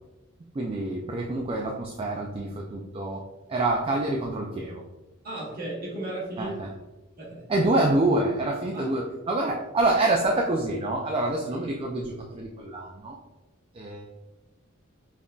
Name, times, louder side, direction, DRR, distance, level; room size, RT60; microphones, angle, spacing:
voice 1, 0.5-3.2 3.5-4.8 6.4-6.7 7.5-13.2 13.7-14.1, right 2 dB, 25° right, 0 dB, 0.3 m, -26 dB
voice 2, 5.2-6.6 7.2-7.5 8.7-9.0, right 1 dB, 45° right, -5 dB, 1.4 m, -35 dB
5.3 x 2.6 x 2.3 m, 1.1 s
head